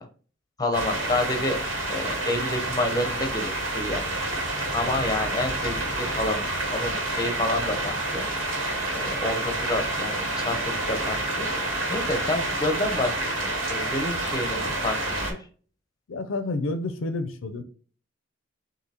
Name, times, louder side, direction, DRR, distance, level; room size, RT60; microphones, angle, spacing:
voice 1, 0.6-1.6 1.9-4.1 4.7-8.3 8.9-10.6 10.9-11.5 11.9-13.1 13.4-15.2, left 1 dB, 20° left, 0.8 m, -29 dB
Rain in the Attic, 0.7-15.3, right 2 dB, 80° right, 1.7 m, -28 dB
voice 2, 16.1-17.6, left 2 dB, 90° left, 0.5 m, -29 dB
6.4 x 2.7 x 2.9 m
head